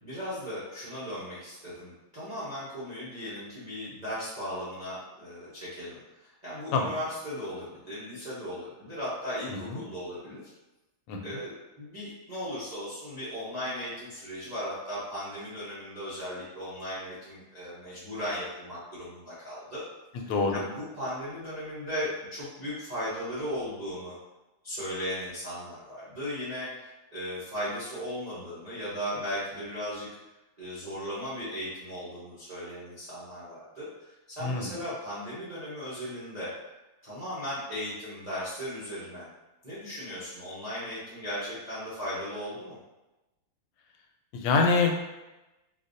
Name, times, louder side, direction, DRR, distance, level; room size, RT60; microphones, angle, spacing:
voice 1, 0.0-10.5 11.2-19.8 20.5-24.1 24.6-30.1 30.6-33.9 34.3-36.5 37.0-39.3 39.6-42.8, equal, 80° right, -11 dB, 0.3 m, -37 dB
voice 2, 9.5-9.8 11.1-11.4 20.1-20.6 34.4-34.7 44.3-45.0, left 4 dB, 85° left, 3 dB, 1.5 m, -26 dB
4.0 x 2.5 x 2.5 m, 1.0 s
omnidirectional pair, 2.3 m